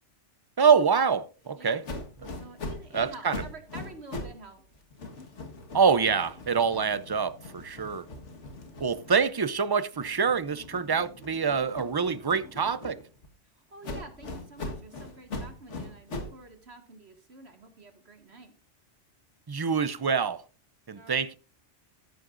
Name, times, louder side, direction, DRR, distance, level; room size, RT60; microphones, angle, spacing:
voice 1, 0.6-1.8 2.9-3.4 5.7-8.1 8.8-13.0 19.5-20.4 20.9-21.3, right 6 dB, 30° right, 0.4 m, -25 dB
sound 1, 1.8-4.4 4.7-9.5 9.9-13.3 13.8-16.4, left 2 dB, 75° left, 2.0 m, -41 dB
voice 2, 2.3-4.6 13.4-18.5 20.9-21.2, right 3 dB, 60° right, 2.4 m, -48 dB
14.5 x 11.0 x 2.6 m
omnidirectional pair, 1.2 m